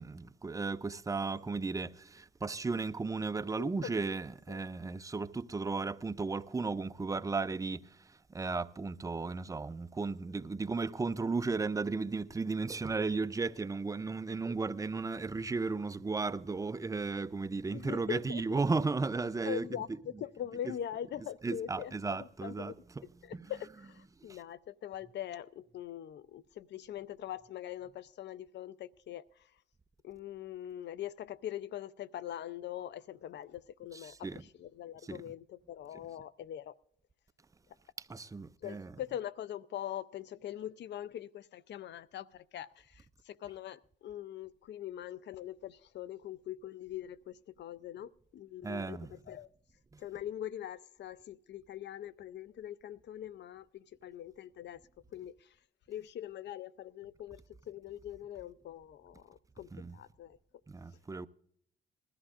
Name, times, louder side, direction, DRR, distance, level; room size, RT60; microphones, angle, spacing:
voice 1, 0.0-19.7 20.7-20.8 21.4-23.0 23.3-23.5 24.2-24.4 33.9-34.4 35.0-35.2 38.0-38.9 48.6-49.1 49.9-50.0 59.7-60.0 60.7-61.3, right 4 dB, 15° right, 0.5 m, -35 dB
voice 2, 3.6-3.9 4.5-4.6 17.7-18.6 19.4-22.7 23.2-29.5 30.0-36.8 38.6-49.5 50.0-54.8 55.1-55.6 55.9-60.4, left 11 dB, 60° left, 0.5 m, -43 dB
20.0 x 13.5 x 2.5 m
cardioid pair, 90°, 20 cm